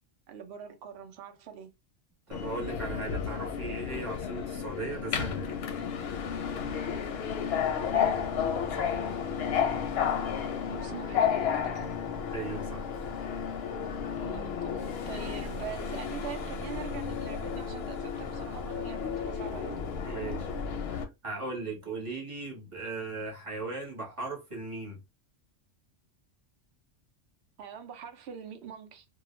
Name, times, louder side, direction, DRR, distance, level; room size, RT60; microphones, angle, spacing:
voice 1, 0.3-1.7 7.8-8.5 10.7-11.9 14.2-19.8 27.6-29.1, right 7 dB, 65° right, 0.8 m, -43 dB
Subway metro underground, 2.3-21.0, left 7 dB, 65° left, 0.7 m, -32 dB
voice 2, 2.3-5.6 8.8-9.4 12.3-12.9 20.0-20.5 20.8-25.0, right 3 dB, 25° right, 1.0 m, -38 dB
2.3 x 2.1 x 3.0 m
omnidirectional pair, 1.3 m